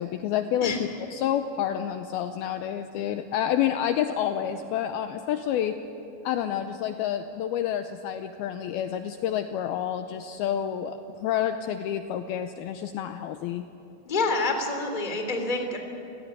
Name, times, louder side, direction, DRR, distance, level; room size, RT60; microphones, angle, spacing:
voice 1, 0.0-5.8 6.2-13.7, left 10 dB, 85° left, 7 dB, 2.2 m, -29 dB
voice 2, 14.1-15.8, left 3 dB, 15° left, 4 dB, 2.0 m, -27 dB
28.0 x 17.5 x 9.5 m, 2.9 s
omnidirectional pair, 5.2 m